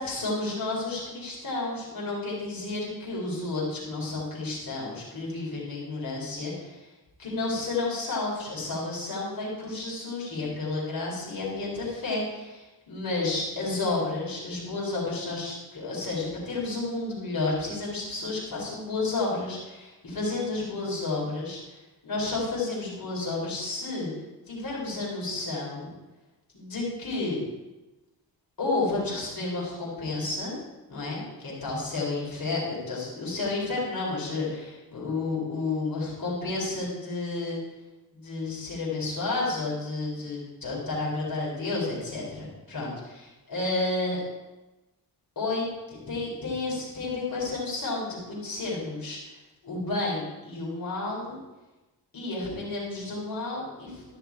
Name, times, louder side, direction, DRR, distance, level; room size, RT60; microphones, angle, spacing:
voice 1, 0.0-6.9 7.2-24.1 24.5-25.9 26.5-27.4 28.6-30.6 30.9-37.6 38.1-44.2 45.4-49.3 49.6-51.4 52.1-54.2, left 3 dB, 55° left, -5 dB, 4.3 m, -31 dB
14.0 x 6.0 x 4.7 m, 1.1 s
cardioid pair, 75°, 41 cm